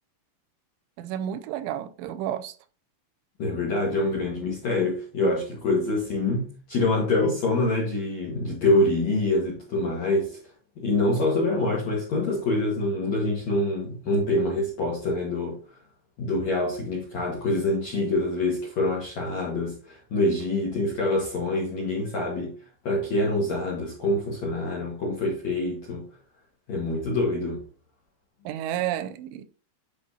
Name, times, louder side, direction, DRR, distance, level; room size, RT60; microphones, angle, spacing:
voice 1, 1.0-2.5 28.5-29.4, right 11 dB, 85° right, 2.9 m, -31 dB
voice 2, 3.4-10.4 10.8-15.6 16.2-22.5 22.8-26.0 26.7-27.6, left 2 dB, 65° left, 1.8 m, -25 dB
9.8 x 5.6 x 2.7 m
omnidirectional pair, 5.5 m